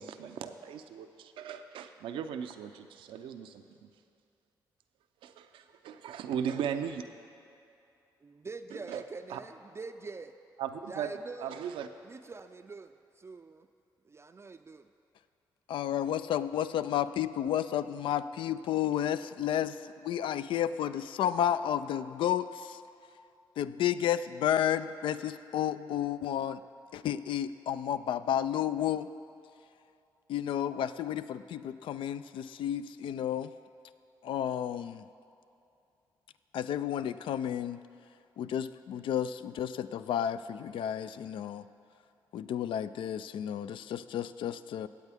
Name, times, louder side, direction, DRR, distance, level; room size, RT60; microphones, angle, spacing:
voice 1, 0.0-3.9 5.2-7.0 8.9-9.0 9.3-9.4 10.6-11.1 11.4-11.9, right 8 dB, 85° right, 0.5 m, -37 dB
voice 2, 8.2-10.3 10.9-11.7 12.0-13.7 14.0-14.9, right 4 dB, 30° right, 0.4 m, -45 dB
voice 3, 15.7-22.8 23.6-26.6 26.9-29.1 30.3-33.5 34.2-35.0 36.5-37.8 38.4-41.6 42.3-44.9, left 10 dB, 75° left, 0.4 m, -32 dB
17.0 x 8.1 x 3.5 m
supercardioid pair, 55°, 9 cm